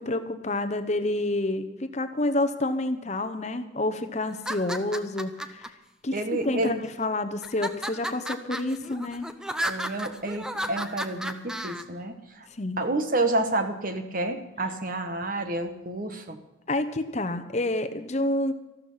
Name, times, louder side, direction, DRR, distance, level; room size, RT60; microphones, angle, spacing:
voice 1, 0.0-5.7 6.0-6.2 6.4-9.3 12.5-12.8 16.7-18.5, left 2 dB, 35° left, 10 dB, 0.8 m, -28 dB
sound 1, 4.3-5.7 6.4-6.9 7.4-11.8, equal, 5° right, 0.6 m, -33 dB
voice 2, 6.1-6.8 9.6-12.5 12.8-16.4, right 2 dB, 45° right, 7 dB, 1.2 m, -29 dB
14.0 x 13.0 x 5.7 m, 1.0 s
head